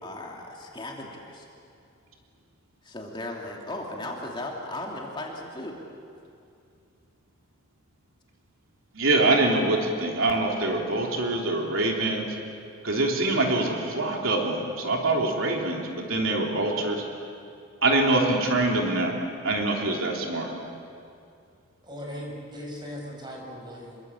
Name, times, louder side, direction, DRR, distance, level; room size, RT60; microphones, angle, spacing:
voice 1, 0.0-1.5 2.8-5.8, left 1 dB, 25° left, -1 dB, 2.8 m, -36 dB
voice 2, 8.9-12.3 12.8-17.0 17.8-19.2 19.4-20.5, right 2 dB, 75° right, 0 dB, 3.5 m, -24 dB
voice 3, 21.8-24.0, equal, 20° right, 0 dB, 5.9 m, -38 dB
28.0 x 22.5 x 8.5 m, 2.4 s
head